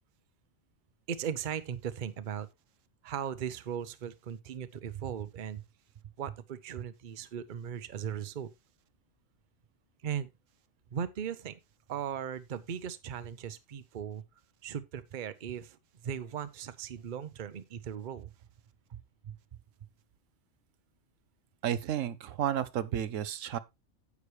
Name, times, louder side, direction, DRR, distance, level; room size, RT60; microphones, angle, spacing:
voice 1, 1.1-2.5 3.0-5.6 6.2-8.5 10.0-10.3 10.9-11.6 11.9-14.2 14.6-15.8 16.0-18.3 19.2-19.4, right 8 dB, 45° right, 0.8 m, -38 dB
voice 2, 21.6-23.6, right 10 dB, 85° right, 1.1 m, -32 dB
9.7 x 8.3 x 3.1 m
omnidirectional pair, 1.3 m